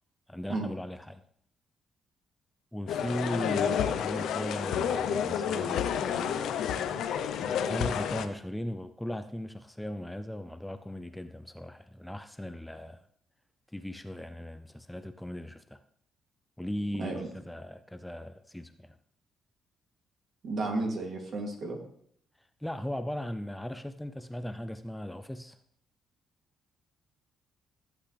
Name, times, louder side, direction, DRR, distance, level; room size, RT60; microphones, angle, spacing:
voice 1, 0.3-1.2 2.7-6.6 7.6-13.0 13.7-15.8 16.6-19.0 22.6-25.6, left 1 dB, 5° left, 0.5 m, -38 dB
sound 1, 2.9-8.3, left 8 dB, 80° left, 0.8 m, -30 dB
voice 2, 20.4-21.8, right 2 dB, 60° right, 2.9 m, -32 dB
14.5 x 8.0 x 3.4 m
cardioid pair, 90°, 0 cm